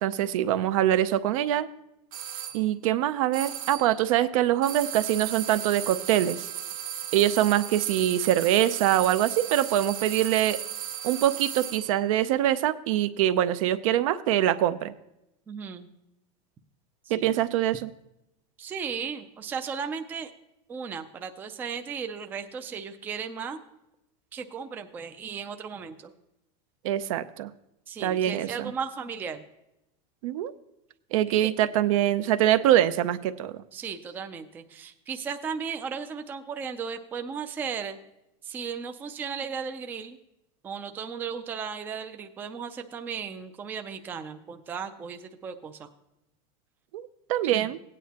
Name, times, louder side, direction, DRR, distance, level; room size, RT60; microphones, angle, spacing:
voice 1, 0.0-1.7 2.5-6.5 7.1-10.6 11.0-14.9 17.1-17.9 26.8-27.5 28.0-28.7 30.2-30.5 31.1-33.6 46.9-47.8, right 12 dB, 70° right, 13 dB, 0.6 m, -24 dB
sound 1, 2.1-2.6 3.3-4.0 4.6-12.0, right 10 dB, 90° right, 1.6 m, -36 dB
voice 2, 15.5-15.9 17.1-17.3 18.6-20.3 20.7-23.6 24.3-26.1 27.9-29.4 31.4-31.5 33.7-38.0 38.4-40.2 40.6-45.9 47.5-47.7, right 6 dB, 10° right, 7 dB, 0.3 m, -36 dB
16.5 x 9.2 x 2.9 m, 0.88 s
supercardioid pair, 175°, 18 cm